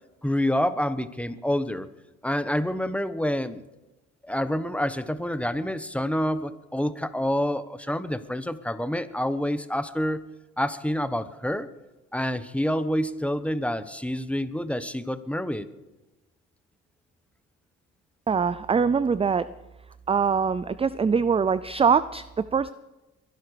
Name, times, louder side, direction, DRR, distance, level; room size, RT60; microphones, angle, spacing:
voice 1, 0.2-1.9 2.2-3.6 4.3-10.2 10.6-11.7 12.1-15.7, equal, 5° left, 12 dB, 1.1 m, -27 dB
voice 2, 18.3-19.5 20.1-22.7, right 6 dB, 20° right, 16 dB, 0.5 m, -23 dB
23.0 x 11.0 x 4.9 m, 1.0 s
cardioid pair, 80°, 31 cm